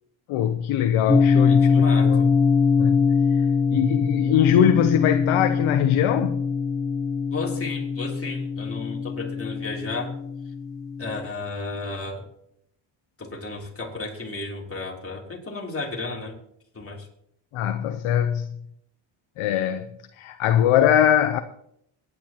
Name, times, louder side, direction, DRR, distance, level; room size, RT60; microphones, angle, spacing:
voice 1, 0.3-2.2 2.8-3.0 3.7-6.4 17.5-18.6 19.4-19.9 20.2-21.4, left 10 dB, 80° left, 0.9 m, -22 dB
sound 1, 1.1-11.3, left 5 dB, 5° left, 0.7 m, -22 dB
voice 2, 1.4-2.3 7.3-10.2 11.0-12.2 13.2-16.3 16.7-17.1, left 3 dB, 25° left, 3.4 m, -33 dB
23.0 x 9.8 x 3.0 m
cardioid pair, 90°, 49 cm